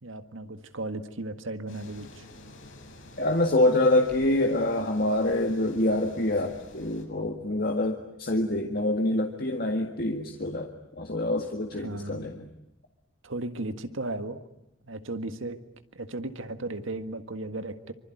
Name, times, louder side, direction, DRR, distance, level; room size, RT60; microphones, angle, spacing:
voice 1, 0.0-2.3 11.7-12.3 13.2-14.5 14.8-15.6 15.9-17.9, right 2 dB, 80° right, 9 dB, 1.8 m, -35 dB
sound 1, 1.7-7.0, left 1 dB, 75° left, 7.1 m, -49 dB
voice 2, 3.2-10.7 11.0-12.4, left 1 dB, 50° left, 3 dB, 1.9 m, -26 dB
25.5 x 25.0 x 9.3 m, 0.83 s
head